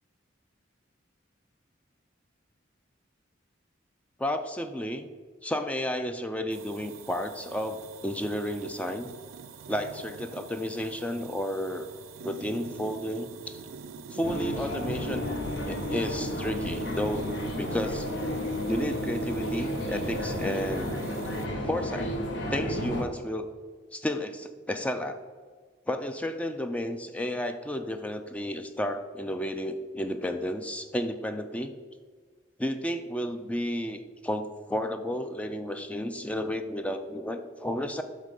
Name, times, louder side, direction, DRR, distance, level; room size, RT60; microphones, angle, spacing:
voice 1, 4.2-5.1 5.4-9.1 9.7-11.9 12.2-13.6 14.1-15.3 15.7-17.3 17.6-18.1 18.7-20.9 21.6-22.1 22.5-23.5 23.9-25.2 25.9-31.7 32.6-38.0, equal, 5° left, 8 dB, 0.3 m, -32 dB
sound 1, 6.5-21.5, right 5 dB, 85° right, 0.4 m, -45 dB
sound 2, 14.2-23.0, equal, 70° left, 0.9 m, -32 dB
7.4 x 3.2 x 5.3 m, 1.5 s
head